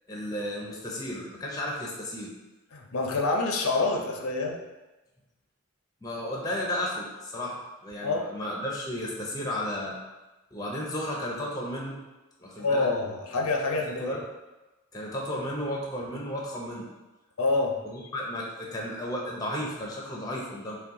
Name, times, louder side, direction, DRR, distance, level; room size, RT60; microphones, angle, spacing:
voice 1, 0.1-2.3 6.0-10.0 10.5-12.0 12.4-12.9 13.9-14.2 14.9-16.9 17.8-20.8, left 1 dB, 15° left, -2 dB, 0.6 m, -33 dB
voice 2, 2.7-4.6 8.0-8.3 12.6-14.2 17.4-17.8, left 3 dB, 85° left, 2 dB, 0.6 m, -27 dB
5.6 x 2.3 x 3.7 m, 1.1 s
head